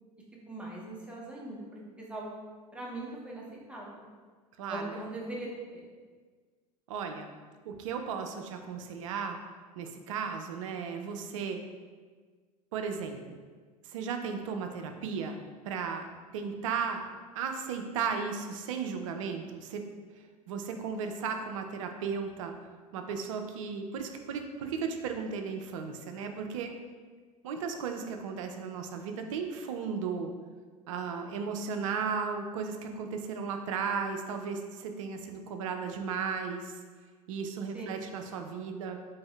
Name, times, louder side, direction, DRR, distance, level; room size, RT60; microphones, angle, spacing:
voice 1, 0.5-1.6 2.0-2.4 2.7-4.1 4.7-5.5 5.7-5.8 37.7-38.0, right 2 dB, 5° right, -4 dB, 0.8 m, -40 dB
voice 2, 4.6-5.0 6.9-7.3 7.7-9.4 9.8-11.6 12.7-13.4 13.9-15.4 15.6-16.1 16.3-17.1 17.4-19.8 20.5-22.5 22.9-26.7 27.4-30.3 30.9-36.7 37.3-39.0, right 6 dB, 60° right, 5 dB, 0.4 m, -35 dB
3.9 x 2.6 x 3.1 m, 1.5 s
figure-of-eight pair, 75°, 19 cm